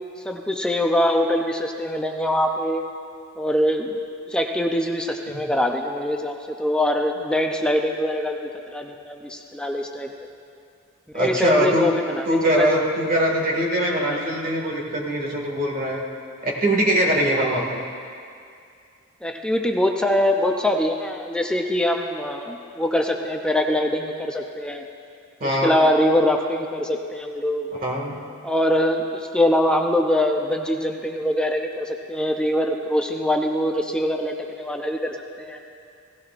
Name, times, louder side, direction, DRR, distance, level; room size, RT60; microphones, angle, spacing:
voice 1, 0.2-2.8 3.4-4.0 4.3-10.1 11.1-12.9 17.4-17.6 19.2-24.9 25.4-27.7 28.4-35.6, left 1 dB, 5° left, 2 dB, 0.5 m, -23 dB
voice 2, 11.1-11.9 12.3-16.0 16.4-17.8 25.4-25.8 27.8-28.2, right 1 dB, 45° right, -1 dB, 1.9 m, -22 dB
17.0 x 15.5 x 2.5 m, 2.4 s
head